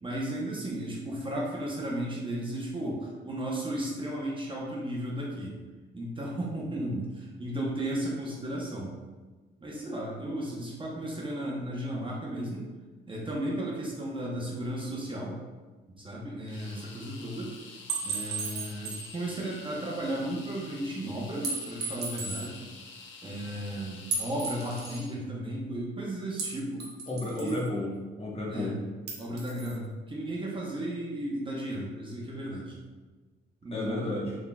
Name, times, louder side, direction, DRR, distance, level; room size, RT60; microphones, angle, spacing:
voice 1, 0.0-5.6 5.9-8.9 9.6-12.7 13.1-15.4 15.9-17.6 18.0-22.6 23.2-26.9 27.4-27.6 28.5-28.7 29.2-32.8 33.6-34.3, right 1 dB, 25° right, -4 dB, 0.8 m, -34 dB
sound 1, 16.5-25.2, left 4 dB, 75° left, 0.6 m, -48 dB
sound 2, 17.9-19.2 19.5-19.6 21.4-22.5 24.1-25.0 26.4-27.7 29.1-29.8, right 4 dB, 55° right, 0.9 m, -35 dB
voice 2, 27.1-28.8 33.7-34.3, left 2 dB, 30° left, -4 dB, 1.1 m, -33 dB
3.6 x 3.6 x 2.3 m, 1.3 s
cardioid pair, 90°, 20 cm